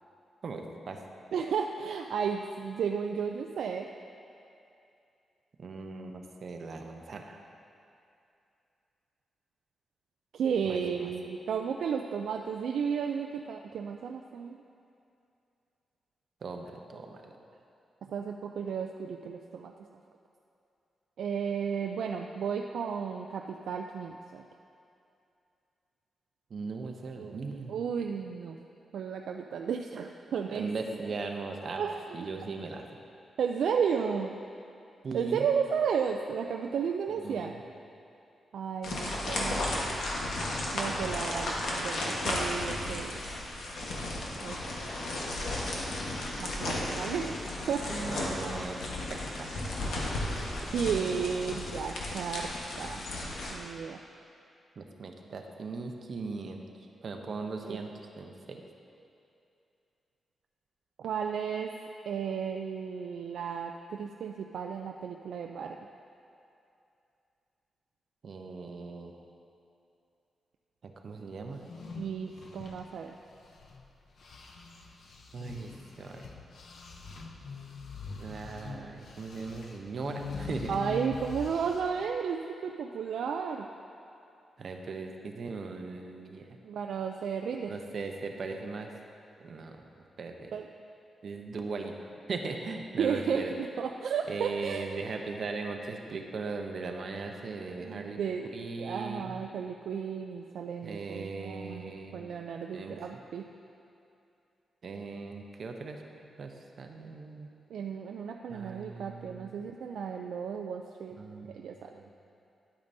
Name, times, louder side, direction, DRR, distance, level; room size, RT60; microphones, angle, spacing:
voice 1, 0.4-1.0 5.6-7.4 10.6-11.1 16.4-17.3 26.5-27.8 30.5-31.8 32.1-33.0 35.0-35.5 37.1-37.6 39.0-39.2 47.9-48.8 49.1-49.5 49.7-49.8 54.8-56.6 57.0-57.9 58.2-58.6 68.2-69.2 70.8-71.6 75.3-75.7 76.0-76.3 78.2-80.8 84.6-86.4 87.7-88.9 89.4-89.8 90.2-90.5 91.2-93.5 94.3-98.2 98.5-99.4 100.8-102.3 102.7-103.0 104.8-106.0 106.4-107.5 108.5-109.6 111.2-111.7 112.0-112.1, right 4 dB, 50° right, 3 dB, 0.7 m, -39 dB
voice 2, 1.3-3.9 10.3-14.6 18.0-19.7 21.2-24.4 27.2-27.4 27.7-28.6 28.9-30.7 31.0-31.1 31.8-32.3 33.4-34.3 35.1-37.5 38.5-39.6 40.7-43.1 44.4-44.8 46.4-47.4 47.7-48.2 50.6-52.5 52.8-53.1 53.5-54.0 57.6-57.8 61.0-61.7 62.1-65.8 72.0-73.1 80.7-83.7 86.6-87.7 90.5-90.7 93.0-95.0 97.8-103.5 107.7-111.2 111.5-112.0, right 6 dB, 85° right, 2 dB, 0.3 m, -33 dB
sound 1, 38.8-53.5, left 1 dB, 85° left, 1.2 m, -34 dB
sound 2, 71.5-73.9 74.2-82.1, left 4 dB, 60° left, 0.7 m, -43 dB
11.0 x 8.6 x 2.7 m, 2.6 s
wide cardioid pair, 135°, 0 cm